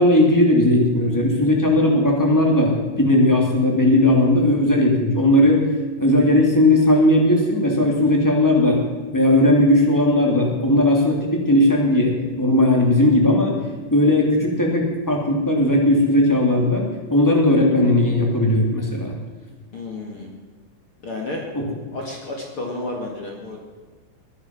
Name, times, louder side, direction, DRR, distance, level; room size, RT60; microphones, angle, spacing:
voice 1, 0.0-5.6 6.0-8.8 9.1-13.5 13.9-19.1 21.5-21.7, left 1 dB, 5° left, 0 dB, 1.6 m, -17 dB
voice 2, 19.7-20.3 21.0-21.5 21.9-23.6, left 2 dB, 45° left, 0 dB, 1.9 m, -31 dB
21.5 x 11.0 x 6.2 m, 1.4 s
omnidirectional pair, 5.2 m